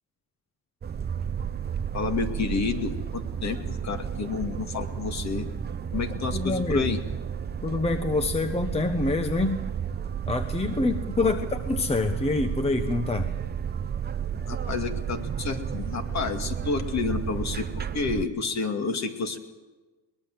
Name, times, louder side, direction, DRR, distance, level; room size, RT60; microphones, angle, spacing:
sound 1, 0.8-18.3, right 8 dB, 25° right, 0.8 m, -32 dB
voice 1, 1.9-5.5 5.9-7.0 11.2-11.3 14.5-19.4, left 5 dB, 40° left, 6 dB, 2.2 m, -30 dB
voice 2, 6.3-7.0 7.6-9.6 10.2-13.3, left 2 dB, 15° left, 8 dB, 1.0 m, -26 dB
22.5 x 20.0 x 7.6 m, 1.3 s
cardioid pair, 135°, 43 cm